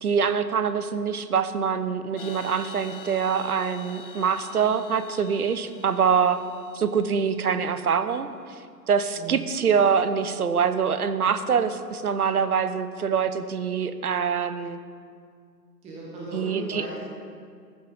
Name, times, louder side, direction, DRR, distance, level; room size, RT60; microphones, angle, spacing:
voice 1, 0.0-6.4 6.7-8.3 8.9-14.8 16.3-16.8, right 6 dB, 60° right, 11 dB, 1.0 m, -24 dB
sound 1, 2.2-7.7, left 5 dB, 35° left, 1.1 m, -45 dB
voice 2, 15.8-17.0, right 2 dB, 15° right, -6 dB, 1.9 m, -35 dB
14.5 x 10.0 x 5.3 m, 2.2 s
figure-of-eight pair, 130°, 49 cm